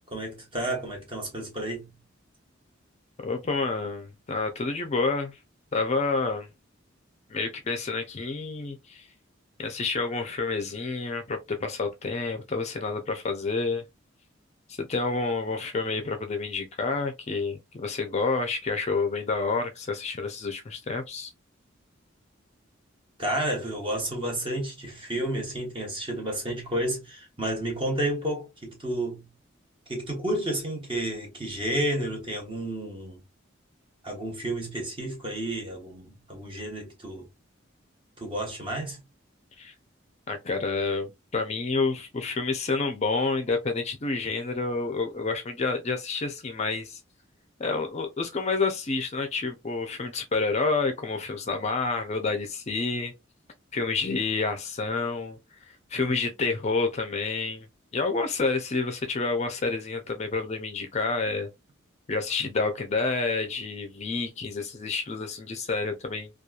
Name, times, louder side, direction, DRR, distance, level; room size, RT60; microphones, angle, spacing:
voice 1, 0.0-2.0 23.2-29.3 29.9-33.2 34.0-37.3 38.2-39.0, right 1 dB, 25° right, 1.0 m, -31 dB
voice 2, 3.2-5.4 5.7-6.5 7.3-9.1 9.6-13.8 14.7-21.3 39.6-39.7 40.3-47.0 47.6-53.1 53.7-55.4 55.7-57.7 57.9-61.5 62.1-66.3, left 3 dB, 35° left, 0.4 m, -29 dB
2.9 x 2.3 x 2.3 m
head